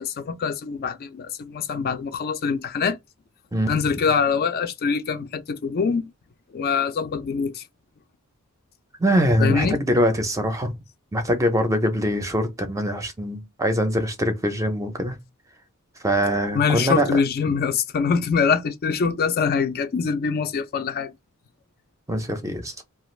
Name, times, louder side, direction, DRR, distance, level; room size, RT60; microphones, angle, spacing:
voice 1, 0.0-3.0 3.7-6.1 6.5-7.6 9.4-9.8 16.5-21.1, left 5 dB, 45° left, 0.4 m, -24 dB
voice 2, 9.0-10.7 11.1-15.2 16.0-17.1 22.1-22.7, equal, 15° right, 0.5 m, -23 dB
2.4 x 2.3 x 3.1 m
head